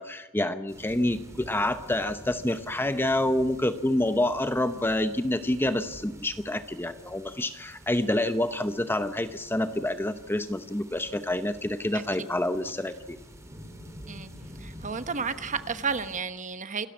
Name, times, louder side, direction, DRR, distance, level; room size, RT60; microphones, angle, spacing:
voice 1, 0.0-13.2, left 1 dB, 10° left, 10 dB, 0.8 m, -27 dB
sound 1, 0.7-16.2, equal, 15° right, 3.1 m, -48 dB
voice 2, 11.9-12.3 14.1-14.3 14.6-16.9, right 5 dB, 35° right, 11 dB, 1.1 m, -32 dB
27.5 x 13.0 x 8.5 m, 1.0 s
head